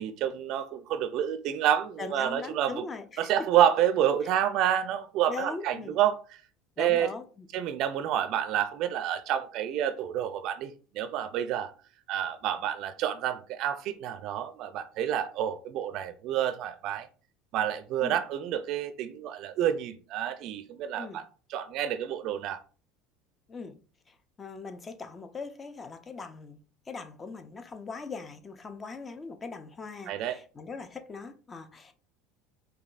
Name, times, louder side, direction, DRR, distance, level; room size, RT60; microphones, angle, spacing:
voice 1, 0.0-2.8 3.2-6.2 6.8-7.1 7.5-11.7 12.1-17.1 17.5-21.2 21.5-22.6 30.1-30.4, right 10 dB, 55° right, 0.4 m, -28 dB
voice 2, 2.0-3.3 5.3-6.0 6.8-7.5 18.0-18.2 21.0-21.2 23.5-23.8 24.1-26.6 26.9-31.9, left 4 dB, 30° left, 0.6 m, -40 dB
5.0 x 2.3 x 2.5 m
hypercardioid pair, 75°, 0 cm